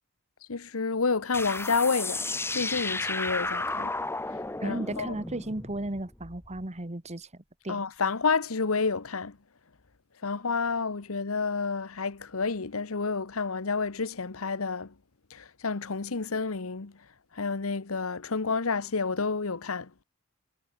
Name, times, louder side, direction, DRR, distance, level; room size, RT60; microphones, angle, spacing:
voice 1, 0.5-2.3 2.5-3.9 4.3-5.1 7.7-9.4 10.2-14.9 15.3-16.9 17.3-20.0, left 4 dB, 75° left, 1.1 m, -29 dB
sound 1, 1.3-6.6, left 2 dB, 10° left, 1.1 m, -33 dB
voice 2, 4.6-7.8, right 1 dB, 30° right, 1.7 m, -35 dB
head